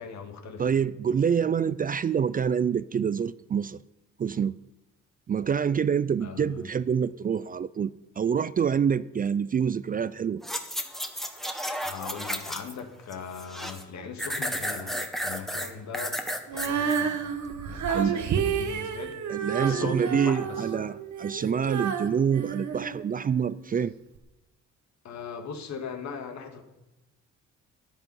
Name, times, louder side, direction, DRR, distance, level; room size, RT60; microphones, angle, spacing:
voice 1, 0.0-0.6 6.2-6.6 11.8-14.9 15.2-16.2 16.6-17.2 17.7-19.2 19.6-20.7 25.0-26.6, left 6 dB, 65° left, 1.9 m, -39 dB
voice 2, 0.6-3.8 4.2-4.6 5.3-10.4 17.9-18.2 19.3-23.9, right 7 dB, 30° right, 0.4 m, -26 dB
sound 1, 10.4-12.8 13.1-13.8 14.2-17.0 17.5-17.6, equal, ahead, 1.5 m, -33 dB
Female singing, 16.5-23.5 24.2-24.3, right 7 dB, 70° right, 1.4 m, -30 dB
13.5 x 9.7 x 5.5 m
cardioid pair, 90°, 30 cm